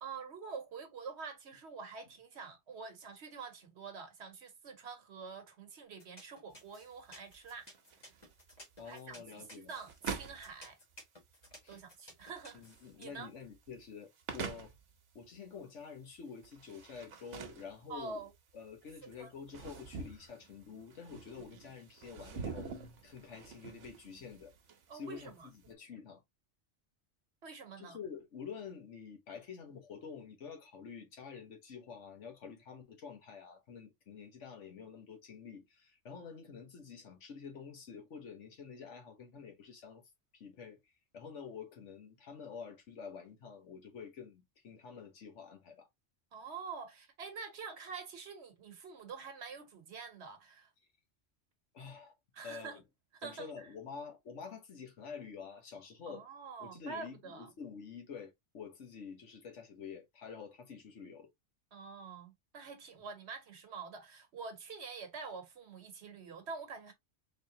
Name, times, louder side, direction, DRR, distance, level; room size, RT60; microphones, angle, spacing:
voice 1, 0.0-7.7 8.8-10.8 11.7-12.6 13.0-13.3 17.9-18.3 19.0-19.3 24.9-25.5 27.4-28.0 46.3-50.7 52.3-52.8 53.1-53.7 56.1-57.5 61.7-66.9, right 5 dB, 65° right, 1.2 m, -46 dB
sound 1, 6.0-13.0, left 1 dB, 35° left, 1.5 m, -54 dB
sound 2, 6.5-25.7, right 5 dB, 90° right, 1.1 m, -48 dB
voice 2, 8.8-9.8 11.6-11.8 12.5-14.7 15.1-18.2 18.5-22.7 23.0-24.5 24.9-26.2 27.8-40.0 40.3-45.9 51.7-52.1 52.4-52.8 53.2-56.3 56.6-61.3, left 6 dB, 80° left, 1.4 m, -48 dB
3.7 x 3.3 x 2.7 m
omnidirectional pair, 1.2 m